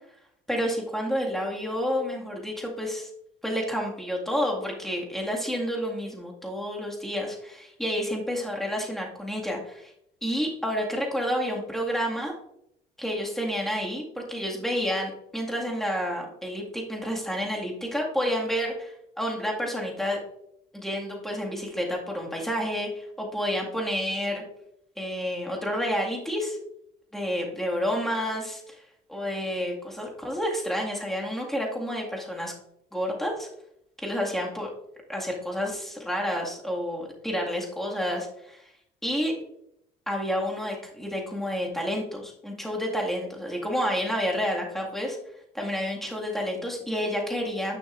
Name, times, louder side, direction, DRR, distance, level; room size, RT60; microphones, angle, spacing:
voice 1, 0.5-3.1 3.4-9.9 10.2-12.3 13.0-20.2 20.7-24.4 25.0-26.6 27.1-28.8 29.1-32.5 32.9-33.5 34.0-34.7 35.1-38.7 39.0-39.3 40.1-45.2 45.5-47.8, equal, ahead, -1 dB, 2.0 m, -29 dB
10.0 x 5.9 x 2.6 m, 0.74 s
cardioid pair, 110°, 17 cm